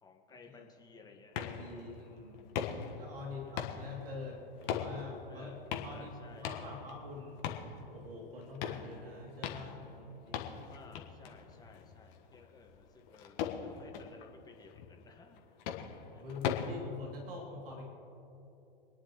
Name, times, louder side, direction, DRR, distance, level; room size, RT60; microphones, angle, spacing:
voice 1, 0.0-1.4 3.3-3.6 5.3-5.6 5.8-6.8 10.7-15.4 16.1-16.2, left 4 dB, 15° left, 2 dB, 1.7 m, -57 dB
sound 1, 1.3-16.7, left 8 dB, 50° left, 1.5 m, -41 dB
voice 2, 1.3-2.5 3.0-7.4 7.9-10.6 16.2-17.9, left 3 dB, 70° right, -1 dB, 2.9 m, -45 dB
26.5 x 10.0 x 3.1 m, 2.9 s
figure-of-eight pair, 100°, 29 cm